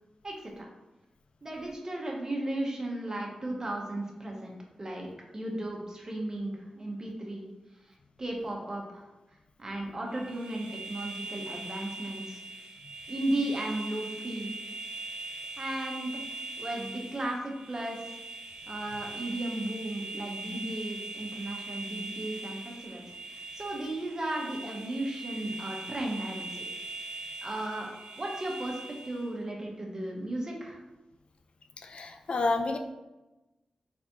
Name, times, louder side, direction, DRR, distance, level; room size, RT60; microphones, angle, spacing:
voice 1, 0.2-0.7 1.4-4.5 4.8-5.1 5.3-7.5 8.2-9.0 9.6-12.4 13.1-14.6 15.6-16.2 16.6-18.2 18.7-23.0 23.3-26.6 27.4-27.9 28.2-30.8, right 1 dB, 30° right, -1 dB, 0.9 m, -35 dB
sound 1, 10.1-29.3, right 3 dB, 70° right, 0.7 m, -41 dB
voice 2, 31.8-32.8, left 3 dB, 60° left, 5 dB, 0.3 m, -29 dB
4.0 x 3.4 x 2.8 m, 1.1 s
wide cardioid pair, 100°, 2 cm